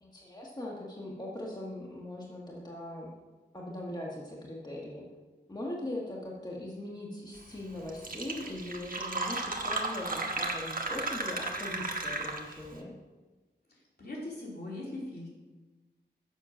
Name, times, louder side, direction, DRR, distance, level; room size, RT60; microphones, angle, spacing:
voice 1, 0.0-3.1 3.5-5.0 5.5-12.9, left 1 dB, 20° left, -3 dB, 1.4 m, -40 dB
Fill (with liquid), 7.6-7.7 7.9-12.7, right 2 dB, 50° right, 1.2 m, -34 dB
voice 2, 13.7-15.3, left 2 dB, 60° left, -5 dB, 3.1 m, -41 dB
7.4 x 6.5 x 6.1 m, 1.3 s
wide cardioid pair, 65°, 19 cm